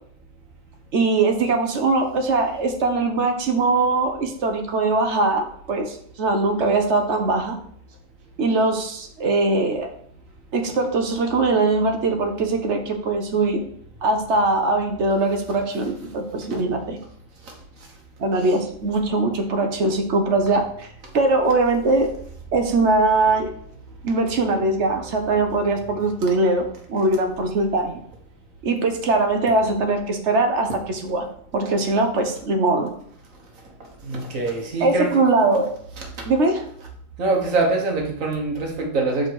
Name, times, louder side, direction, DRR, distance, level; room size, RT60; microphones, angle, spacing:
voice 1, 0.9-7.6 8.4-9.9 10.5-13.6 14.0-17.0 18.2-20.9 21.1-22.1 22.5-23.5 24.0-28.0 28.6-31.3 31.5-32.9 34.8-35.7 36.3-36.7, right 3 dB, 60° right, 5 dB, 1.2 m, -21 dB
voice 2, 34.0-35.1 36.0-36.1 37.2-39.3, right 3 dB, 85° right, 1 dB, 1.7 m, -24 dB
5.6 x 4.6 x 4.6 m, 0.63 s
omnidirectional pair, 1.3 m